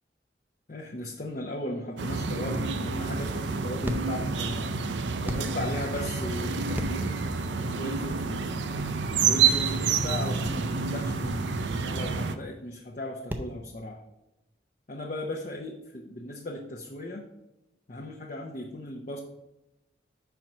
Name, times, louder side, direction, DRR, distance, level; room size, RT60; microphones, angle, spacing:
voice 1, 0.7-4.7 5.2-7.2 7.6-8.6 9.2-14.0 14.9-17.2 17.9-19.2, left 1 dB, 40° left, -1 dB, 0.6 m, -37 dB
sound 1, 2.0-12.3, right 5 dB, 75° right, 0.5 m, -28 dB
sound 2, 3.8-13.5, equal, 10° right, 0.5 m, -40 dB
5.4 x 4.5 x 5.9 m, 0.93 s
head